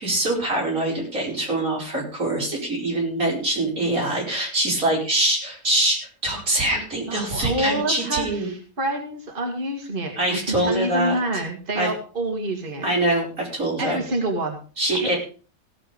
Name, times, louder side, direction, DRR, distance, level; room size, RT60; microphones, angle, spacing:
voice 1, 0.0-8.5 10.2-11.2 11.8-11.9 12.8-14.0 14.8-15.2, right 1 dB, 85° right, -2 dB, 5.4 m, -24 dB
voice 2, 7.1-12.9 13.8-14.6 14.9-15.1, right 1 dB, 35° right, 2 dB, 2.5 m, -27 dB
17.0 x 7.5 x 5.2 m, 0.38 s
omnidirectional pair, 1.5 m